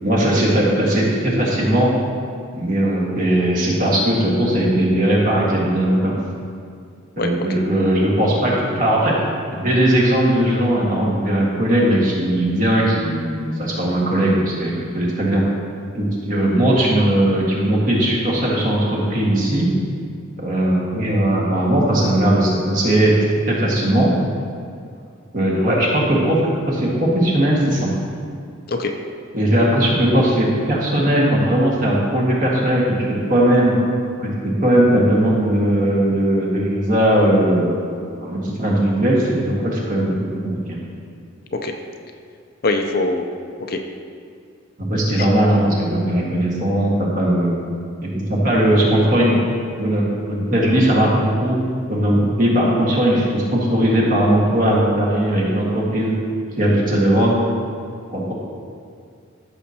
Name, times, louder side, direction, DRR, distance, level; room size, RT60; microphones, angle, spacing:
voice 1, 0.0-1.9 2.5-6.2 7.2-9.2 9.5-15.4 15.9-19.7 20.4-24.1 25.3-27.9 29.3-32.9 33.3-33.7 34.2-40.1 40.4-40.5 44.9-47.5 48.0-49.3 49.8-51.6 51.9-56.1 56.6-57.3 58.1-58.3, right 1 dB, 40° right, -4 dB, 1.7 m, -18 dB
voice 2, 42.6-43.3 43.7-43.8 45.2-45.3, left 2 dB, 45° left, 4 dB, 0.5 m, -22 dB
14.0 x 6.4 x 2.9 m, 2.3 s
head